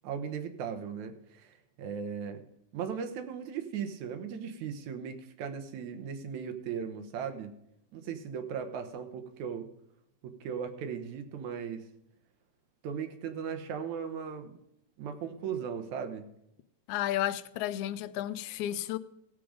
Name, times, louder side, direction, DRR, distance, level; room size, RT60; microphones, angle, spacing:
voice 1, 0.0-2.4 2.7-7.5 7.9-9.7 10.2-11.9 12.8-14.6 15.0-16.3, right 7 dB, 75° right, 2.5 m, -37 dB
voice 2, 16.9-19.0, left 12 dB, 85° left, 2.0 m, -32 dB
16.5 x 7.8 x 5.0 m
omnidirectional pair, 3.4 m